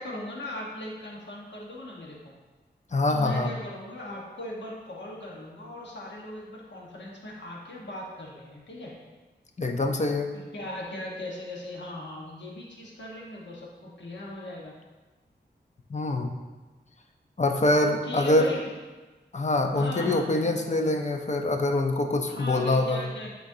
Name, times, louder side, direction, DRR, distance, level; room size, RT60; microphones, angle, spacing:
voice 1, 0.0-2.3 3.1-8.9 10.3-14.7 18.0-18.7 19.7-21.0 22.3-23.4, left 1 dB, 80° left, -3 dB, 1.3 m, -39 dB
voice 2, 2.9-3.5 9.6-10.3 15.9-16.3 17.4-18.5 19.3-23.0, left 2 dB, 40° left, 4 dB, 0.7 m, -24 dB
10.5 x 4.4 x 2.7 m, 1.2 s
wide cardioid pair, 75°, 18 cm